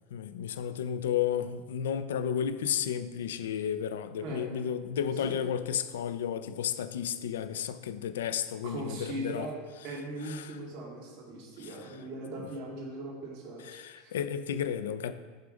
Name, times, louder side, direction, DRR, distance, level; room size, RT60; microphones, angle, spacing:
voice 1, 0.1-9.5 10.2-10.6 11.6-11.7 13.6-15.1, left 9 dB, 85° left, 0.4 m, -32 dB
voice 2, 8.6-9.5 9.8-14.1, right 2 dB, 65° right, 1.6 m, -39 dB
8.1 x 3.7 x 5.0 m
hypercardioid pair, 105°, 0 cm